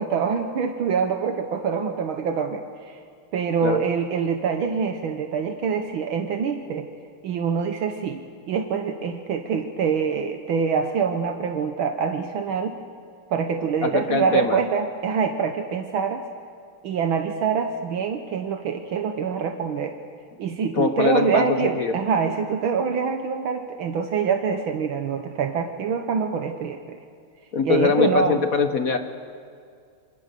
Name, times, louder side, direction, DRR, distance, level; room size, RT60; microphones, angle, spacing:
voice 1, 0.0-3.0 3.3-6.9 7.2-8.2 8.5-12.7 13.3-16.3 16.8-20.0 20.4-27.0 27.6-28.4, right 6 dB, 70° right, 6 dB, 1.8 m, -25 dB
voice 2, 13.8-14.6 20.7-22.0 27.5-29.0, left 5 dB, 50° left, 8 dB, 1.1 m, -22 dB
26.5 x 25.5 x 6.7 m, 2.2 s
omnidirectional pair, 2.4 m